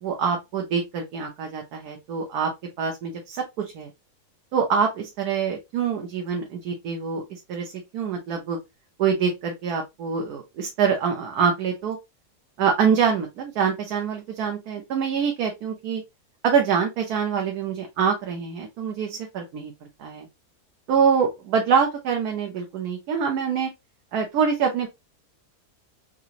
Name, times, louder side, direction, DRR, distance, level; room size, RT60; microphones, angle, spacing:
voice 1, 0.0-2.5 2.8-3.9 4.5-8.6 9.0-12.0 12.6-16.0 16.4-19.7 20.0-20.3 20.9-23.7 24.1-24.9, right 6 dB, 80° right, 2 dB, 1.3 m, -25 dB
3.9 x 2.8 x 2.4 m, 0.22 s
omnidirectional pair, 1.6 m